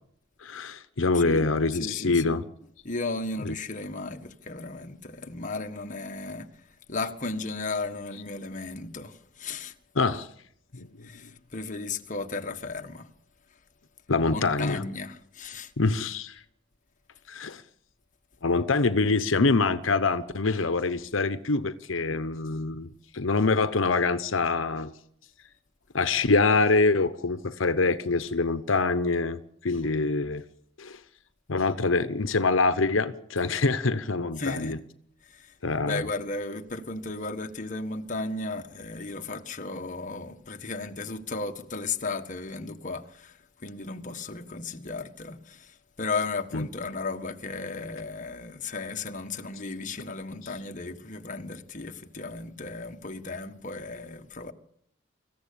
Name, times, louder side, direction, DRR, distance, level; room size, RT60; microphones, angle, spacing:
voice 1, 0.4-2.4 3.4-3.5 10.0-10.3 10.7-11.1 14.1-14.8 15.8-16.4 17.3-17.6 18.4-22.9 23.1-24.9 25.9-30.4 30.8-31.0 31.5-34.8 35.6-36.1 46.5-46.7, left 3 dB, 85° left, 1.0 m, -25 dB
voice 2, 1.1-2.4 2.8-9.7 11.0-13.1 14.3-15.7 34.4-34.8 35.2-35.5 35.8-54.5, left 3 dB, 40° left, 1.6 m, -35 dB
25.0 x 15.0 x 8.7 m
head